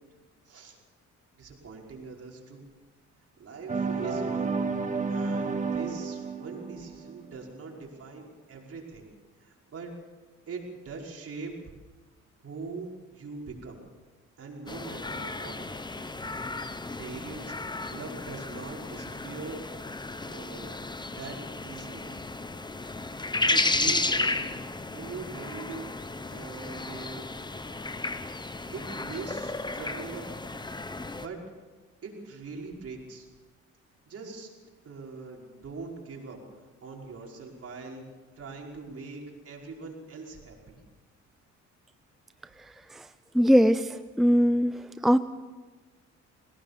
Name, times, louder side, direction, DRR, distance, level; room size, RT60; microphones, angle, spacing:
voice 1, 0.5-0.8 1.3-2.6 3.4-4.6 5.1-9.1 9.4-9.9 10.5-11.6 12.4-13.8 14.4-15.6 16.2-16.3 17.0-19.6 20.2-20.8 21.1-22.1 23.4-24.5 24.9-25.9 26.3-27.3 28.7-30.4 31.2-31.4 32.0-33.3 34.1-34.5 34.8-38.0 38.4-40.8, right 4 dB, 50° right, -1 dB, 5.5 m, -42 dB
sound 1, 3.7-7.5, right 4 dB, 25° right, 2.2 m, -31 dB
sound 2, 14.7-31.3, left 2 dB, 15° left, 1.1 m, -33 dB
voice 2, 43.3-45.2, equal, ahead, 11 dB, 0.6 m, -22 dB
22.0 x 18.0 x 7.0 m, 1.3 s
cardioid pair, 90°, 30 cm